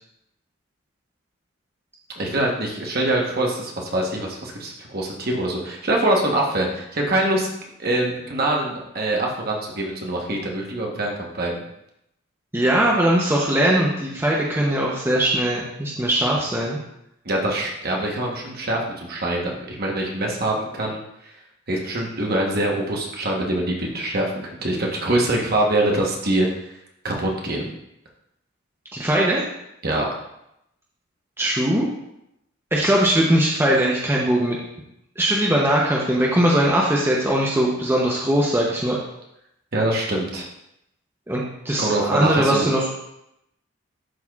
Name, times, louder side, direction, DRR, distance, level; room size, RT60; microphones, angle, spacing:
voice 1, 2.2-7.5 7.8-11.6 17.2-21.0 21.7-26.5 27.0-27.7 29.8-30.1 39.7-40.5 41.8-42.7, right 1 dB, 45° right, -1 dB, 1.1 m, -24 dB
voice 2, 12.5-16.8 28.9-29.4 31.4-31.9 32.7-34.6 35.2-39.0 41.3-42.9, right 1 dB, 10° right, -4 dB, 0.7 m, -20 dB
11.5 x 4.2 x 2.4 m, 0.82 s
head